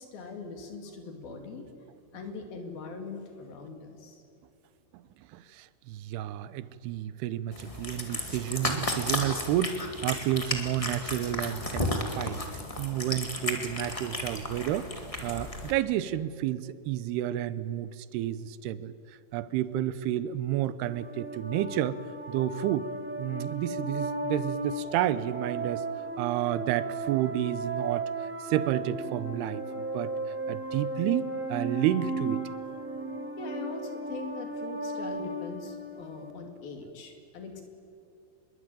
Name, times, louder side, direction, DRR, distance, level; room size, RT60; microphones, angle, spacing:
voice 1, 0.0-1.7 2.1-4.2 33.4-37.6, left 4 dB, 65° left, 5 dB, 4.1 m, -41 dB
voice 2, 5.3-14.9 15.2-18.9 19.3-22.0 22.3-22.9 23.2-25.8 26.2-30.1 30.5-32.4, right 12 dB, 85° right, 15 dB, 2.8 m, -31 dB
Cat, 7.5-15.7, left 1 dB, 45° left, 0.4 m, -34 dB
sound 1, 20.9-36.3, right 2 dB, 5° right, 0.9 m, -35 dB
24.5 x 21.5 x 9.1 m, 2.4 s
omnidirectional pair, 4.6 m